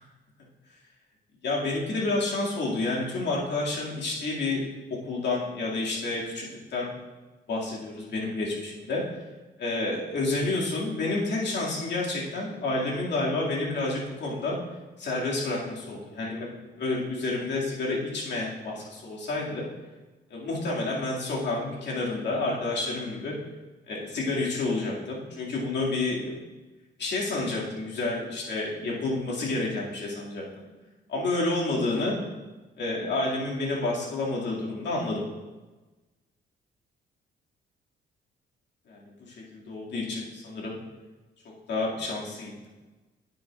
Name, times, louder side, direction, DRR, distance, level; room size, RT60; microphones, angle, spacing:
voice 1, 1.4-4.6 4.9-6.9 7.5-9.0 9.6-14.6 15.0-16.5 16.8-19.7 20.3-23.3 23.9-26.4 27.0-30.7 31.1-32.2 32.8-35.3 38.9-40.8 41.7-42.5, left 2 dB, 65° left, -4 dB, 2.2 m, -29 dB
9.1 x 7.8 x 2.4 m, 1.2 s
cardioid pair, 90°, 20 cm